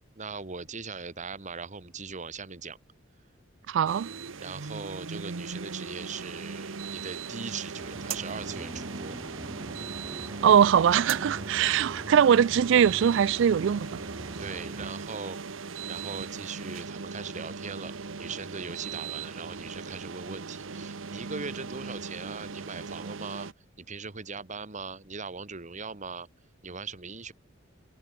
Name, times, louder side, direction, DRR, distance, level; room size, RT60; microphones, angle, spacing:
voice 1, 0.0-2.8 4.4-9.2 14.4-15.4 15.9-17.9 18.2-23.5 23.8-26.3 26.6-27.3, right 4 dB, 40° right, 1.7 m, -40 dB
voice 2, 3.7-4.1 10.4-14.0, right 8 dB, 70° right, 0.3 m, -21 dB
sound 1, 3.9-23.5, right 5 dB, 85° right, 1.0 m, -39 dB
sound 2, 7.8-14.9, right 1 dB, 20° right, 4.8 m, -43 dB
head